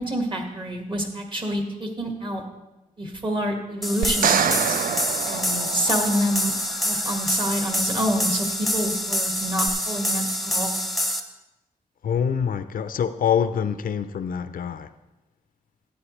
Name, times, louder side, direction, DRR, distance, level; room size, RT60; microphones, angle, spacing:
voice 1, 0.0-2.4 3.0-4.8 5.3-6.5 6.8-10.8, equal, 35° right, 1.7 m, -27 dB
sound 1, 3.1-7.9, right 1 dB, 60° right, 2.3 m, -42 dB
sound 2, 3.8-11.2, equal, ahead, 0.8 m, -26 dB
sound 3, 4.0-6.3 9.7-9.8, right 8 dB, 75° right, 0.4 m, -25 dB
voice 2, 12.0-14.9, left 7 dB, 75° left, 0.5 m, -25 dB
13.0 x 9.3 x 3.2 m
wide cardioid pair, 105°, 15 cm